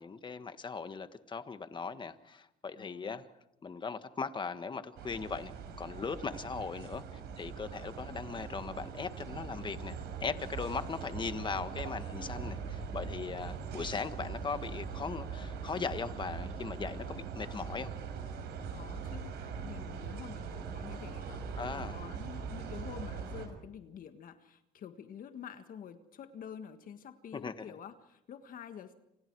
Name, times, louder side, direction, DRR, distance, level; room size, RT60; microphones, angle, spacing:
voice 1, 0.0-3.2 3.6-5.5 5.8-9.9 10.2-17.9 21.6-22.0 27.4-27.5, left 5 dB, 30° left, 10 dB, 1.5 m, -39 dB
voice 2, 2.8-3.2 18.7-28.9, left 8 dB, 55° left, 8 dB, 1.6 m, -48 dB
sound 1, 5.0-23.5, right 6 dB, 75° right, 5.2 m, -41 dB
29.0 x 27.0 x 4.8 m, 0.84 s
cardioid pair, 110°, 17 cm